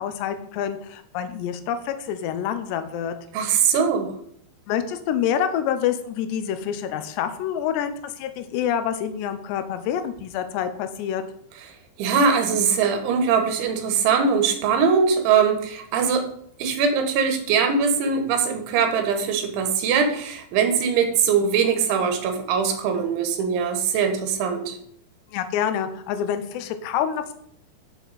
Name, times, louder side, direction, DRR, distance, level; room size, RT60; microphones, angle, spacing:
voice 1, 0.0-3.1 4.7-11.2 25.3-27.3, left 9 dB, 80° left, 9 dB, 2.7 m, -27 dB
voice 2, 3.3-4.1 12.0-16.3 16.6-24.8, right 6 dB, 80° right, 6 dB, 3.6 m, -21 dB
11.5 x 6.4 x 4.1 m, 0.68 s
omnidirectional pair, 5.3 m